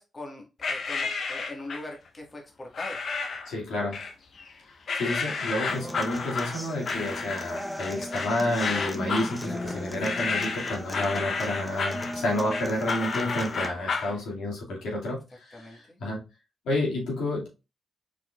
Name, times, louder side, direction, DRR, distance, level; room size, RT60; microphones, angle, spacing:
voice 1, 0.0-3.0 15.5-16.0, left 2 dB, 35° left, 1 dB, 1.7 m, -41 dB
sound 1, 0.6-1.9 2.7-3.5 3.9-4.5 4.9-14.2, left 4 dB, 65° left, 0.8 m, -31 dB
voice 2, 3.5-4.0 4.9-16.2 16.6-17.5, left 1 dB, 85° left, -3 dB, 2.3 m, -30 dB
Human voice / Acoustic guitar, 5.7-13.7, left 1 dB, 10° left, 0.9 m, -37 dB
5.0 x 4.1 x 2.4 m, 0.27 s
supercardioid pair, 50°, 0 cm